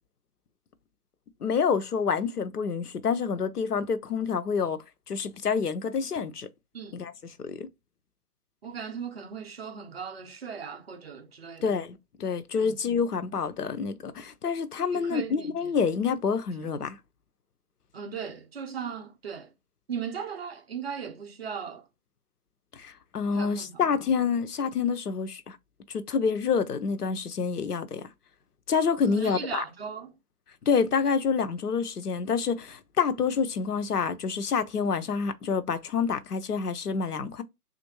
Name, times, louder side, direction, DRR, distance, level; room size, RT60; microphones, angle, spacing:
voice 1, 1.4-6.5 6.9-7.1 7.4-7.7 11.6-17.0 22.8-25.6 26.1-28.0 28.7-29.6 30.7-37.4, left 6 dB, 80° left, 0.7 m, -27 dB
voice 2, 8.6-11.7 12.6-12.8 14.9-15.7 17.9-19.5 19.9-21.8 23.3-23.8 29.1-30.1, right 7 dB, 40° right, 0.7 m, -37 dB
3.5 x 2.5 x 2.9 m
figure-of-eight pair, 145°, 46 cm